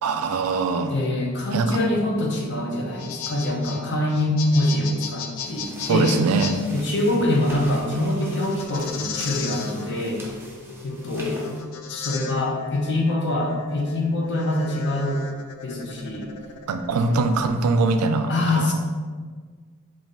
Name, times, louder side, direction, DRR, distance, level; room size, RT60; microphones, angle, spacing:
voice 1, 0.0-0.9 1.5-1.8 5.9-6.5 16.7-18.7, right 3 dB, 80° right, 8 dB, 0.3 m, -22 dB
voice 2, 0.9-6.1 6.7-10.2 10.8-11.5 11.9-15.2 15.6-16.3 17.1-17.2 18.3-18.7, left 1 dB, 50° left, -1 dB, 0.7 m, -24 dB
sound 1, 2.8-17.5, left 6 dB, 85° left, 0.4 m, -36 dB
sound 2, 5.3-11.6, right 1 dB, 10° right, 0.6 m, -43 dB
3.8 x 2.5 x 3.9 m, 1.5 s
head